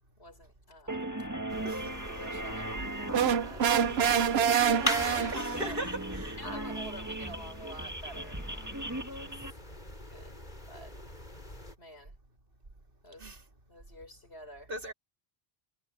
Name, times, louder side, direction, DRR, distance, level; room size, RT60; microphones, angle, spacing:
voice 1, 0.2-1.0 2.1-3.7 3.9-5.8 6.4-8.7 9.2-9.3 10.1-10.3 10.7-10.9 11.8-12.1 13.0-13.3 13.7-14.7, equal, 80° left, 6.1 m, -49 dB
sound 1, 0.9-9.5, right 1 dB, 15° right, 2.3 m, -38 dB
sound 2, 1.5-11.8, left 1 dB, 45° left, 6.4 m, -41 dB
sound 3, 3.1-5.7, right 8 dB, 75° right, 1.0 m, -26 dB
voice 2, 5.3-6.4 13.2-13.4 14.7-14.9, right 1 dB, 60° right, 2.6 m, -38 dB
omnidirectional pair, 1.1 m